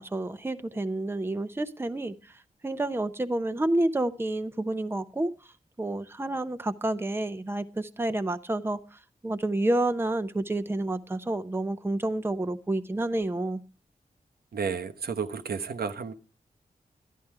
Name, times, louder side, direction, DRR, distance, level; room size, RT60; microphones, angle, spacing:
voice 1, 0.0-2.3 2.6-5.3 5.8-13.6, right 1 dB, 15° right, 0.7 m, -29 dB
voice 2, 14.5-16.1, right 6 dB, 85° right, 0.9 m, -32 dB
12.5 x 10.5 x 4.7 m
wide cardioid pair, 105°, 16 cm